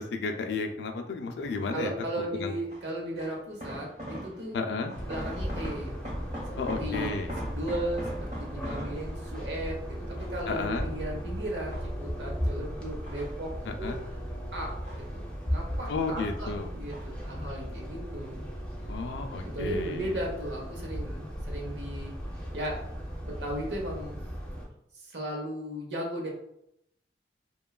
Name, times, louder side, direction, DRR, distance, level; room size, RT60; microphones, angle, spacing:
voice 1, 0.0-1.9 2.4-2.6 4.5-4.9 6.6-7.3 10.5-10.9 13.7-14.0 15.9-16.7 18.9-20.1, left 4 dB, 75° left, 5 dB, 0.4 m, -32 dB
sound 1, 1.4-1.8 2.7-4.6 4.9-9.7 10.2-11.1 11.5-12.3 12.8-14.2 14.4-15.6 15.9-16.5 16.9-17.3 17.6-17.7, equal, 45° right, 1.0 m, -42 dB
voice 2, 1.7-4.6 5.0-6.0 6.8-14.2 14.5-18.5 19.4-22.1 22.5-24.2 24.9-26.3, right 1 dB, 75° right, 0 dB, 0.8 m, -36 dB
sound 2, 4.9-24.6, equal, 5° left, 0.6 m, -36 dB
2.9 x 2.2 x 2.3 m, 0.77 s
head